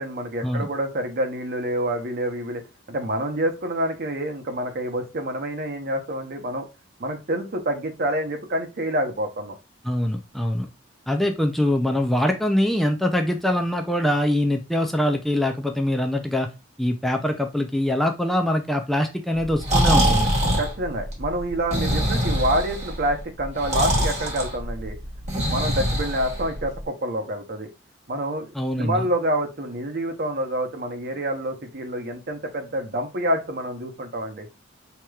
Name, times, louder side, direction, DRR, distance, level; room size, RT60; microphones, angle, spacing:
voice 1, 0.0-2.6 2.9-6.7 7.0-9.5 20.6-25.0 25.5-27.7 28.1-28.5 28.8-34.5, right 1 dB, 55° right, 4 dB, 0.8 m, -27 dB
voice 2, 9.8-10.7 11.1-16.5 16.8-20.3 28.5-29.1, left 1 dB, ahead, 3 dB, 0.4 m, -23 dB
Breathing, 19.4-26.8, equal, 40° right, 1.4 m, -24 dB
4.7 x 2.9 x 2.3 m, 0.28 s
head